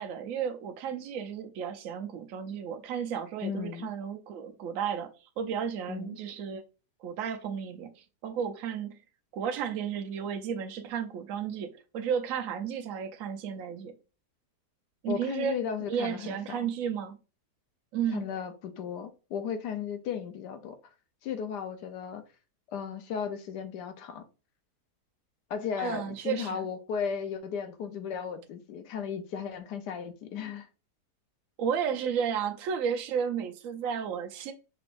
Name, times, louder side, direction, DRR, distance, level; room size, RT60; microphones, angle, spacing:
voice 1, 0.0-6.6 7.0-9.0 9.3-14.0 15.0-17.2 17.9-18.3 25.8-26.7 31.6-34.5, right 7 dB, 65° right, 1.0 m, -33 dB
voice 2, 3.4-3.9 5.9-6.2 15.1-16.6 18.1-20.8 21.2-22.2 22.7-24.2 25.5-30.7, left 7 dB, 80° left, 1.3 m, -35 dB
5.9 x 3.4 x 2.5 m
omnidirectional pair, 1.8 m